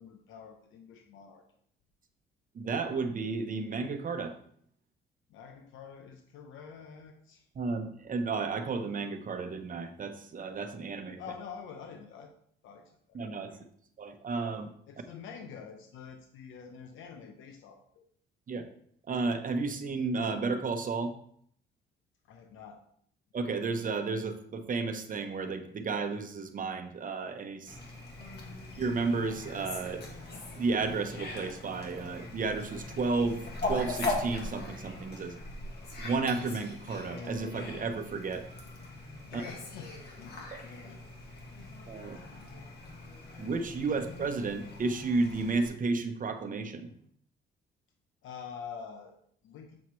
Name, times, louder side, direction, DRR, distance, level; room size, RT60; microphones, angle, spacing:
voice 1, 0.0-1.4 5.3-7.5 11.2-12.3 12.6-13.2 13.5-13.7 14.9-18.0 22.3-22.8 39.2-41.0 41.6-42.7 48.2-49.2 49.4-49.8, left 6 dB, 80° left, 4 dB, 0.8 m, -47 dB
voice 2, 2.5-4.3 7.6-11.2 13.1-13.5 14.0-14.7 18.5-18.7 19.1-21.1 23.3-27.8 28.8-30.0 30.6-35.4 36.0-38.5 39.3-39.4 40.5-40.6 41.9-42.2 43.4-46.9, right 4 dB, 45° right, 7 dB, 0.9 m, -32 dB
Fowl, 27.7-45.7, left 2 dB, 55° left, 1.9 m, -40 dB
7.3 x 5.7 x 3.2 m, 0.65 s
cardioid pair, 90°, 20 cm